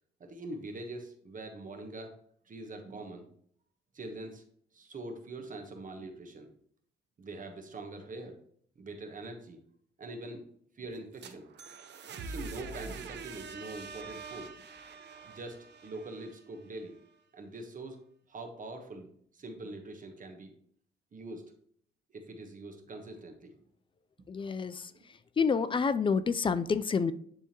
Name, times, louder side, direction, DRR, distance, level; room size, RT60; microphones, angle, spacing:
voice 1, 0.2-2.2 2.5-3.3 3.9-4.4 4.7-6.5 7.2-8.4 8.8-9.6 10.0-10.5 10.8-11.5 12.3-14.6 15.2-16.9 17.3-18.0 18.3-19.1 19.3-20.5 21.1-21.4 22.1-23.5 24.8-25.0, right 2 dB, 40° right, 5 dB, 1.2 m, -43 dB
sound 1, 10.9-16.8, right 4 dB, 60° right, 0.8 m, -45 dB
voice 2, 24.3-24.9 25.4-27.1, left 5 dB, 25° left, 13 dB, 0.5 m, -28 dB
10.0 x 3.6 x 2.9 m, 0.64 s
cardioid pair, 90°, 20 cm